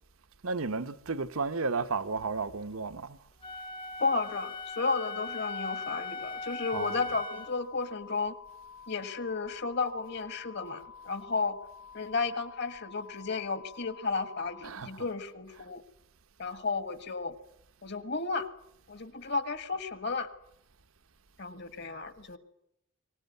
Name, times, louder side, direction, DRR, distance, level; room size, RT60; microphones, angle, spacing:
voice 1, 0.4-3.2 6.7-7.0 14.6-15.1 15.6-15.7, right 4 dB, 85° right, 1.0 m, -33 dB
Wind instrument woodwind instrument, 3.4-7.6, left 3 dB, 25° left, 0.8 m, -39 dB
voice 2, 4.0-8.4 8.9-11.6 11.9-15.8 16.4-17.3 17.8-18.5 18.9-20.3 21.4-22.4, left 4 dB, 55° left, 1.7 m, -33 dB
sound 1, 6.7-14.7, left 6 dB, 80° left, 3.4 m, -50 dB
23.5 x 18.5 x 9.4 m
head